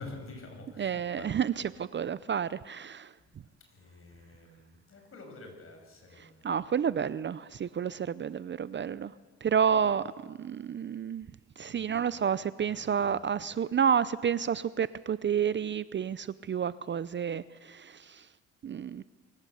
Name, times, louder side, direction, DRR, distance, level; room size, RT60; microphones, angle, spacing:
voice 1, 0.0-1.3 3.4-6.5 11.6-12.0 12.6-13.3, left 3 dB, 45° left, 3 dB, 6.6 m, -48 dB
voice 2, 0.8-3.1 6.2-9.2 9.4-11.3 11.6-18.3 18.6-19.0, right 7 dB, 40° right, 17 dB, 0.6 m, -30 dB
24.0 x 15.0 x 8.2 m, 1.4 s
cardioid pair, 90°, 30 cm